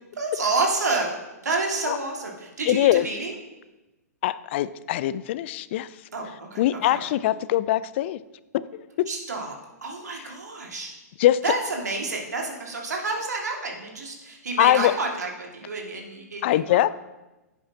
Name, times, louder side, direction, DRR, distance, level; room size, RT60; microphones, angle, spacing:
voice 1, 0.2-1.2 1.4-3.3 6.1-7.4 9.1-9.5 9.8-10.9 11.4-16.4 16.7-16.9, right 3 dB, 75° right, 1 dB, 1.9 m, -29 dB
voice 2, 2.7-3.1 4.2-6.0 6.6-8.2 8.5-9.1 11.2-11.4 14.6-14.9 16.4-16.9, left 14 dB, 45° left, 17 dB, 0.4 m, -22 dB
10.5 x 8.2 x 2.7 m, 1.1 s
figure-of-eight pair, 115°, 9 cm